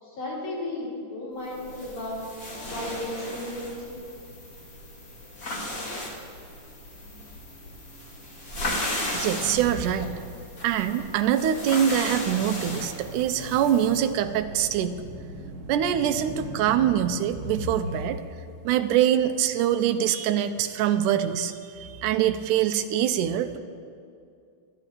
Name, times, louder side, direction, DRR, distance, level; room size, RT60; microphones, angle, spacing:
voice 1, 0.0-2.3 2.7-4.0, left 1 dB, 70° left, -7 dB, 5.3 m, -34 dB
sound 1, 1.5-14.0, left 1 dB, 35° left, 1.9 m, -35 dB
voice 2, 9.1-10.1 10.6-15.0 15.7-18.2 18.7-23.6, right 10 dB, 85° right, 9 dB, 2.2 m, -24 dB
sound 2, 12.4-18.0, right 1 dB, 50° right, 1.4 m, -38 dB
29.0 x 10.5 x 3.0 m, 2.4 s
omnidirectional pair, 3.6 m